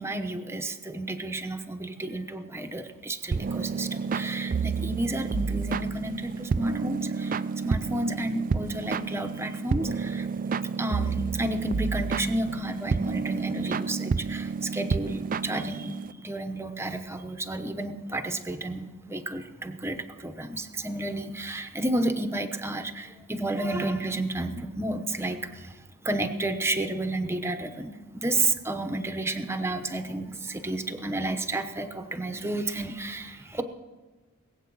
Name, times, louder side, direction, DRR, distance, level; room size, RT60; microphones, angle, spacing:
voice 1, 0.0-7.4 7.6-10.3 10.8-25.7 26.0-33.6, right 2 dB, 10° right, 7 dB, 0.9 m, -31 dB
sound 1, 3.3-16.1, right 5 dB, 35° right, 0.4 m, -30 dB
20.0 x 8.2 x 6.2 m, 1.3 s
head